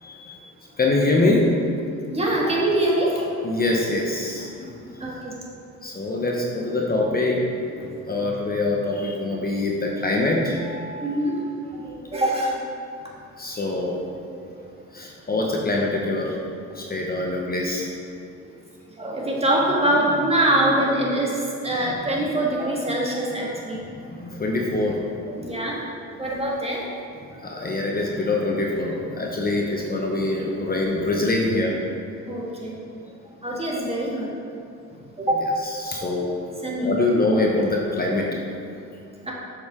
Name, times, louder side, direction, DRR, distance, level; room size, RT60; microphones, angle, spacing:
voice 1, 0.0-0.4 0.8-1.5 2.4-2.5 3.2-5.2 5.8-7.4 8.1-11.4 13.4-14.0 14.9-16.4 16.7-17.9 21.8-21.9 23.7-23.8 24.1-25.2 27.4-31.7 35.6-36.3 36.8-38.3, left 2 dB, 30° left, -1 dB, 1.0 m, -24 dB
voice 2, 2.1-3.1 5.0-5.3 7.8-7.9 8.2-8.3 11.0-11.4 11.7-12.6 14.3-14.7 16.7-17.0 19.0-23.8 24.3-24.4 25.3-25.8 26.2-26.9 27.5-27.6 32.3-32.8 33.4-34.3 35.2-35.4 36.6-37.0 39.2-39.3, right 1 dB, 20° right, -3 dB, 1.8 m, -24 dB
7.8 x 6.7 x 3.7 m, 2.6 s
cardioid pair, 90°, 30 cm